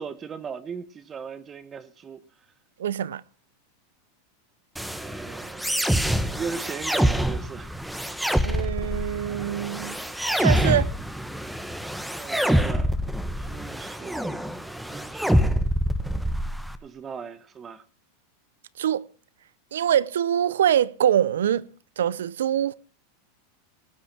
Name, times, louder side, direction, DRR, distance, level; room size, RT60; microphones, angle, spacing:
voice 1, 0.0-2.2 5.0-7.8 12.2-13.0 13.4-14.5 14.8-15.6 16.8-17.8, right 6 dB, 25° right, 1.0 m, -38 dB
voice 2, 2.8-3.2 8.4-10.0 10.4-10.9 18.8-19.0 19.7-21.7 22.0-22.7, right 10 dB, 85° right, 0.7 m, -24 dB
sound 1, 4.8-16.8, equal, ahead, 1.3 m, -26 dB
18.5 x 8.6 x 6.0 m
hypercardioid pair, 115°, 0 cm